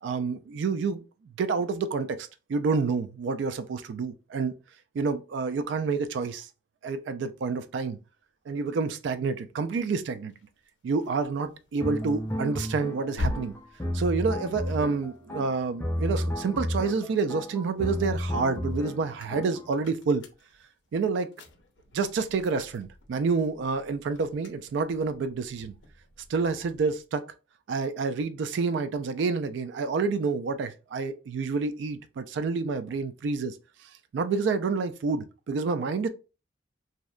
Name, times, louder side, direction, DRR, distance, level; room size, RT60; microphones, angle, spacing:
voice 1, 0.0-1.0 1.4-4.5 4.9-6.5 6.8-8.0 8.5-10.3 10.8-13.6 13.9-20.2 20.9-21.3 21.9-25.7 26.3-27.2 27.7-33.6 34.1-36.1, right 4 dB, 85° right, 0.3 m, -28 dB
sound 1, 10.3-16.8 17.3-27.1, left 1 dB, 85° left, 0.5 m, -43 dB
sound 2, 11.8-19.7, equal, 15° left, 0.3 m, -32 dB
2.7 x 2.1 x 2.3 m
head